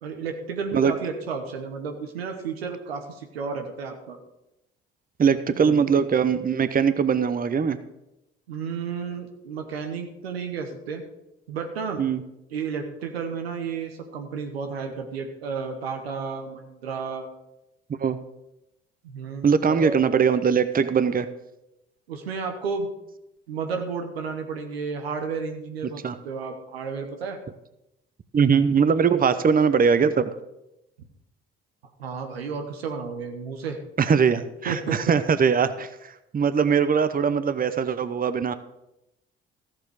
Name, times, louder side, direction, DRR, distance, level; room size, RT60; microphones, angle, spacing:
voice 1, 0.0-4.2 5.3-5.4 5.6-5.8 8.5-11.0 11.5-12.0 12.5-17.3 19.0-20.0 22.1-22.9 23.5-27.4 32.0-33.8 34.7-35.0, right 5 dB, 90° right, 5 dB, 1.0 m, -32 dB
voice 2, 5.2-7.8 12.0-12.2 18.0-18.2 19.4-21.3 26.0-26.2 28.3-30.3 34.0-38.5, right 6 dB, 30° right, 13 dB, 0.8 m, -21 dB
14.0 x 7.5 x 4.8 m, 0.89 s
hypercardioid pair, 50°, 30 cm